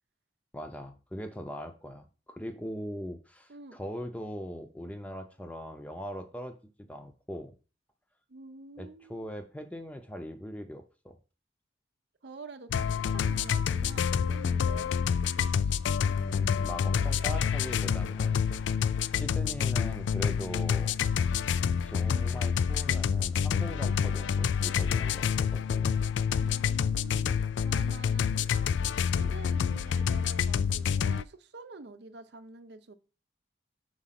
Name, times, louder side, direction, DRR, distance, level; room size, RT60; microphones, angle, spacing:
voice 1, 0.5-6.6 6.9-7.5 8.8-11.2 15.7-15.9 16.2-18.5 19.1-21.0 21.8-26.0, equal, 5° left, 7 dB, 0.6 m, -40 dB
voice 2, 8.3-9.3 12.2-14.9 26.4-28.5 29.0-32.9, right 3 dB, 70° right, 10 dB, 0.7 m, -47 dB
sound 1, 12.7-31.2, left 7 dB, 80° left, 0.3 m, -28 dB
5.0 x 4.7 x 5.8 m, 0.35 s
head